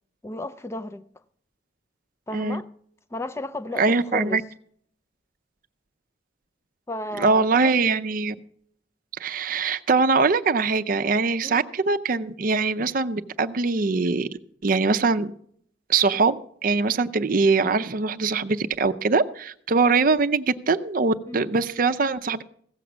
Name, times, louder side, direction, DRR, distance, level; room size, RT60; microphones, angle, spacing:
voice 1, 0.2-1.1 2.3-2.7 3.1-4.4 6.9-7.7 11.4-11.6 21.3-21.4, left 2 dB, 15° left, 0.4 m, -33 dB
voice 2, 3.8-4.4 7.2-8.3 9.2-14.3 14.6-15.3 15.9-22.4, right 4 dB, 45° right, 0.5 m, -22 dB
16.0 x 7.0 x 6.2 m
head